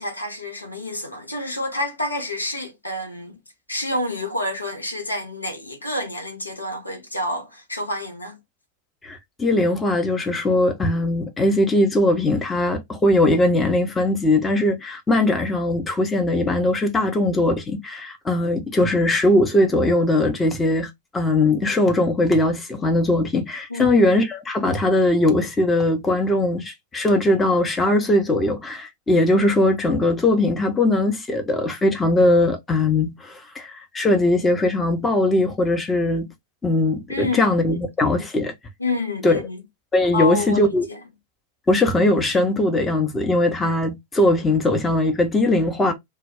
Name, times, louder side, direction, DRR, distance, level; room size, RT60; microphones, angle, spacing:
voice 1, 0.0-3.4 3.7-8.4 23.7-23.9 37.1-37.8 38.8-39.6 40.1-41.0, left 2 dB, 80° left, 0.7 m, -28 dB
voice 2, 9.0-36.3 36.6-38.5 39.2-39.4 39.9-40.9 41.7-45.9, left 1 dB, 15° left, 0.6 m, -20 dB
2.2 x 2.1 x 3.4 m
figure-of-eight pair, 90°, 0 cm